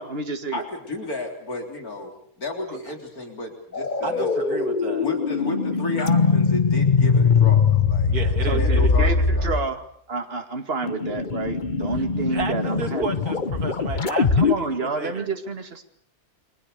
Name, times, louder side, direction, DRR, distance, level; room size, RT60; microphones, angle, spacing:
voice 1, 0.0-0.6 2.7-2.8 8.4-13.0 14.4-15.8, right 3 dB, 40° right, 6 dB, 2.4 m, -29 dB
voice 2, 0.5-4.3 5.0-9.5, left 2 dB, 75° left, 4 dB, 4.1 m, -33 dB
sound 1, 3.7-9.7 10.8-14.5, left 5 dB, 35° left, 1.2 m, -21 dB
voice 3, 4.0-5.1 8.1-8.9 12.1-15.3, right 4 dB, 90° right, 5 dB, 2.7 m, -33 dB
30.0 x 23.5 x 6.8 m, 0.63 s
omnidirectional pair, 1.6 m